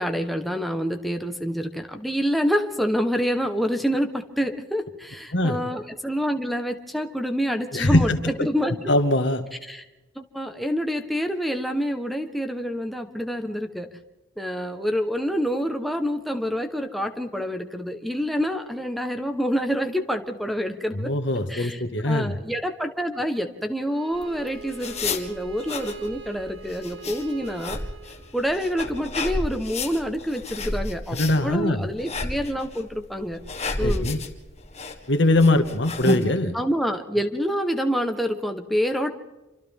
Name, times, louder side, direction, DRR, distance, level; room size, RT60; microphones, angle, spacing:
voice 1, 0.0-8.9 9.6-9.8 10.1-13.9 14.4-21.1 21.5-27.8 28.3-33.4 33.8-34.1 36.5-39.1, equal, ahead, 4 dB, 1.2 m, -27 dB
voice 2, 7.7-8.5 8.9-9.4 20.9-22.4 31.1-31.9 33.8-34.2 35.1-36.6, left 1 dB, 65° left, 7 dB, 2.0 m, -22 dB
Bowed string instrument, 23.8-28.8, right 7 dB, 70° right, 2.4 m, -43 dB
sound 1, 24.1-36.2, left 2 dB, 35° left, 1.9 m, -32 dB
28.0 x 25.0 x 3.7 m, 1.1 s
head